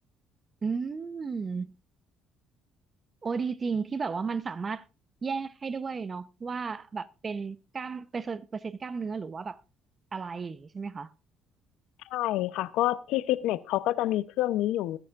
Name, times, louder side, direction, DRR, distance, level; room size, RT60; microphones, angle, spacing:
voice 1, 0.6-1.7 3.2-4.8 5.2-9.6 10.1-11.1, right 5 dB, 35° right, 0.9 m, -33 dB
voice 2, 12.1-15.0, left 14 dB, 75° left, 0.7 m, -28 dB
21.0 x 10.5 x 2.5 m
supercardioid pair, 65°, 0 cm